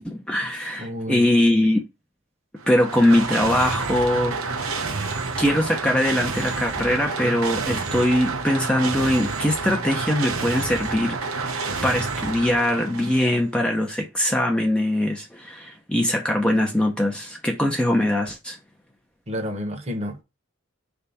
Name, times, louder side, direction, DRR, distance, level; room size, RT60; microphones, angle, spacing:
voice 1, 0.0-1.8 2.7-4.4 5.4-18.6, left 1 dB, 5° left, 0.6 m, -22 dB
voice 2, 0.8-1.3 19.3-20.2, equal, 30° right, 1.0 m, -30 dB
sound 1, 2.6-13.4, right 4 dB, 85° right, 1.0 m, -29 dB
4.9 x 3.5 x 5.5 m
head